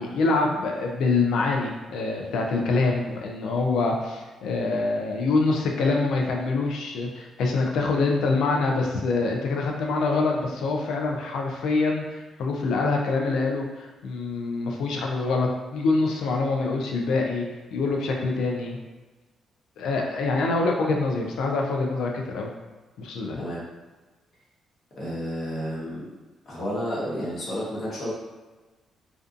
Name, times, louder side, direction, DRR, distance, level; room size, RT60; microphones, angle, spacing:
voice 1, 0.0-17.4 17.7-18.8 19.8-22.5 23.0-23.4, left 3 dB, 75° left, 1 dB, 0.4 m, -25 dB
voice 2, 25.0-26.0 26.5-28.1, equal, 50° left, -6 dB, 1.0 m, -31 dB
2.5 x 2.3 x 2.5 m, 1.2 s
cardioid pair, 90°, 0 cm